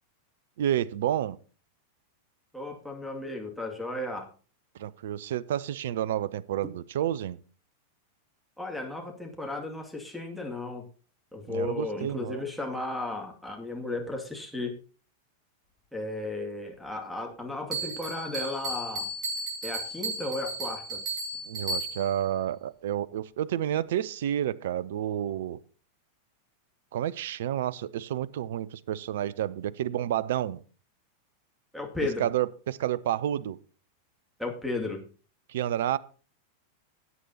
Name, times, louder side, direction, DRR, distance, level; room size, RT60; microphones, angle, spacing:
voice 1, 0.6-1.4 4.8-7.4 11.5-12.4 21.5-25.6 26.9-30.6 32.2-33.6 35.5-36.0, right 11 dB, 55° right, 0.5 m, -30 dB
voice 2, 2.5-4.3 8.6-10.9 11.3-14.8 15.9-19.1 19.6-21.1 31.7-32.3 34.4-35.0, left 2 dB, ahead, 2.3 m, -34 dB
Bell, 17.7-22.2, right 2 dB, 30° right, 5.9 m, -34 dB
17.0 x 8.2 x 2.8 m
figure-of-eight pair, 90°, 0 cm